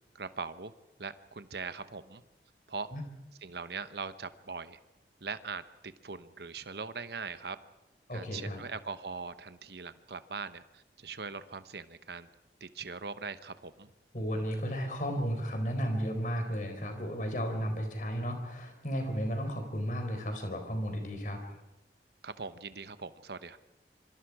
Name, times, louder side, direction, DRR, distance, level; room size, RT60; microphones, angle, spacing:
voice 1, 0.1-0.7 1.0-2.2 2.7-2.9 3.4-4.8 5.2-7.6 8.1-12.3 12.6-13.9 22.2-23.6, right 4 dB, 70° right, 12 dB, 1.0 m, -41 dB
voice 2, 8.1-8.6 14.1-21.4, equal, 45° left, 5 dB, 4.1 m, -34 dB
26.0 x 24.5 x 4.9 m, 0.96 s
head